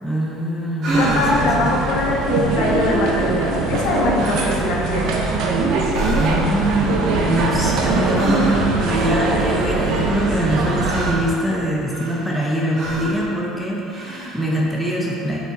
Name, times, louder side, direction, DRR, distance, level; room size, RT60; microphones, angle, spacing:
voice 1, 0.0-1.7 6.2-15.4, right 1 dB, 5° left, -4 dB, 0.7 m, -23 dB
sound 1, 0.8-1.6 3.6-3.9 4.2-4.6 5.0-5.5 5.9-6.7 8.1-8.9 10.0-11.4 11.9-12.4 12.7-13.2 13.9-14.5, right 2 dB, 50° right, 1.3 m, -27 dB
sound 2, 0.9-11.2, right 3 dB, 65° right, 0.7 m, -22 dB
voice 2, 1.0-5.1, left 2 dB, 70° left, -2 dB, 1.1 m, -22 dB
6.0 x 4.2 x 4.0 m, 2.9 s
cardioid pair, 130°, 0 cm